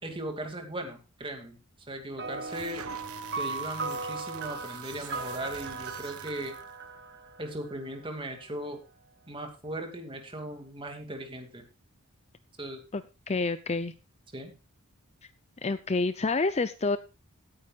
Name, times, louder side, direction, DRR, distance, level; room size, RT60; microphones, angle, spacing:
voice 1, 0.0-1.6 1.9-2.8 3.4-6.6 7.4-8.8 9.3-11.6 12.6-12.8 14.3-14.5, right 1 dB, 25° right, 5 dB, 2.4 m, -38 dB
sound 1, 2.2-8.0, right 4 dB, 50° right, 1.4 m, -37 dB
sound 2, 2.3-6.7, right 7 dB, 75° right, 1.3 m, -46 dB
voice 2, 12.9-13.9 15.6-17.0, left 3 dB, 30° left, 13 dB, 0.5 m, -28 dB
17.0 x 9.7 x 2.4 m, 0.28 s
head